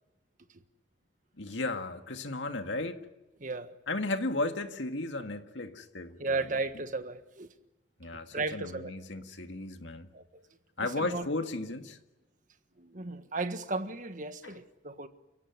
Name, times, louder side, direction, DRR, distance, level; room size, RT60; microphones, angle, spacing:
voice 1, 1.4-3.0 3.9-6.4 8.0-10.1 10.8-12.0 14.4-14.5, left 2 dB, 75° left, 2.0 m, -35 dB
voice 2, 3.4-3.7 6.2-7.5 8.3-8.9 10.1-10.2 10.8-11.3 12.8-15.1, right 3 dB, 45° right, 1.5 m, -35 dB
30.0 x 16.5 x 9.8 m
head